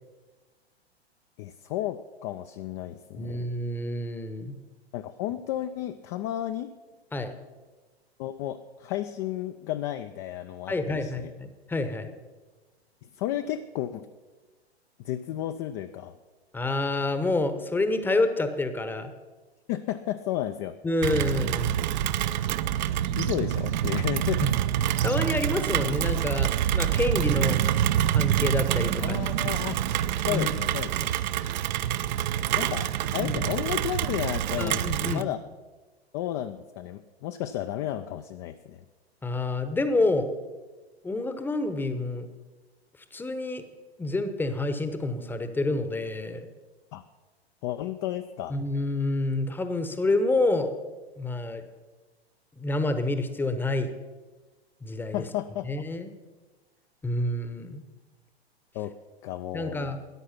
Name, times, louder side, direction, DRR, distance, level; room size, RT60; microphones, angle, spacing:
voice 1, 1.4-3.4 4.9-6.7 8.2-11.3 13.2-14.1 15.0-16.1 19.7-20.8 23.1-24.6 29.0-29.8 30.2-31.1 32.5-35.4 36.1-38.8 46.9-47.0 47.6-48.6 55.1-55.7 58.7-58.9 59.2-59.9, left 12 dB, 30° left, 8 dB, 0.4 m, -33 dB
voice 2, 3.2-4.6 7.1-7.3 10.7-12.1 16.5-19.1 20.8-21.7 24.4-24.5 25.0-27.6 28.1-29.2 30.3-30.5 33.2-33.3 34.6-35.3 39.2-40.3 41.0-42.3 43.1-43.6 44.0-46.5 48.5-50.7 51.2-51.6 52.6-53.9 54.8-55.2 55.6-56.1 57.0-57.8 59.5-60.0, left 2 dB, 5° left, 9 dB, 0.9 m, -28 dB
Rain, 21.0-35.2, right 11 dB, 45° right, 0.6 m, -26 dB
13.5 x 10.0 x 5.8 m, 1.3 s
figure-of-eight pair, 105°, 32 cm